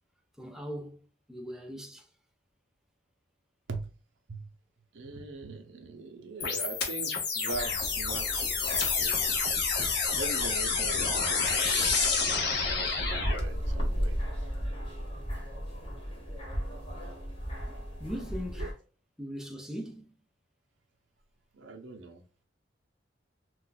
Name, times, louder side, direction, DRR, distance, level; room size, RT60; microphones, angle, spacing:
voice 1, 0.4-2.1 17.7-17.8 18.0-18.7 19.2-20.1, equal, 5° right, 0.5 m, -40 dB
voice 2, 4.9-9.2 9.5-9.9 10.2-14.2 18.6-18.7 21.5-22.2, right 3 dB, 80° right, 0.7 m, -41 dB
sound 1, 6.4-13.4, left 5 dB, 60° left, 0.7 m, -29 dB
sound 2, 7.5-18.7, equal, 30° left, 1.0 m, -36 dB
2.4 x 2.3 x 3.9 m
head